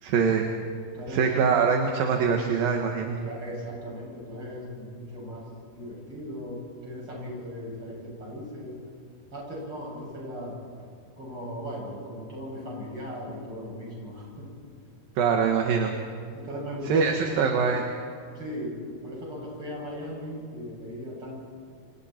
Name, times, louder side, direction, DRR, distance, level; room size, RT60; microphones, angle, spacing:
voice 1, 0.0-0.5 1.1-3.2 15.2-15.9 16.9-17.9, right 6 dB, 70° right, 3 dB, 3.1 m, -23 dB
voice 2, 0.9-1.4 3.2-8.8 9.3-10.6 11.2-14.5 16.3-17.5 18.3-18.8 19.0-21.4, equal, 35° right, -3 dB, 8.3 m, -38 dB
28.5 x 27.5 x 4.5 m, 2.3 s
omnidirectional pair, 4.4 m